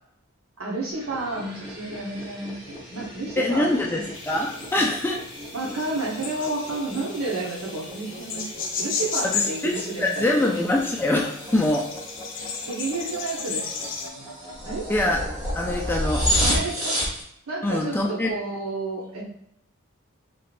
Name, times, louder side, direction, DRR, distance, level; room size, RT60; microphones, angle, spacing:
voice 1, 0.6-3.7 5.5-8.5 8.8-10.3 12.7-13.9 14.2-14.3 14.6-14.9 16.4-17.0 17.5-19.2, right 2 dB, 90° right, -3 dB, 1.1 m, -31 dB
sound 1, 0.9-17.2, equal, 20° right, 0.9 m, -32 dB
voice 2, 3.4-5.2 9.2-11.9 14.9-15.2 15.6-16.3 17.6-18.3, left 1 dB, 10° left, 0 dB, 0.3 m, -24 dB
sound 2, 4.1-14.1, left 5 dB, 60° left, 0.6 m, -34 dB
3.7 x 3.3 x 2.5 m, 0.75 s
head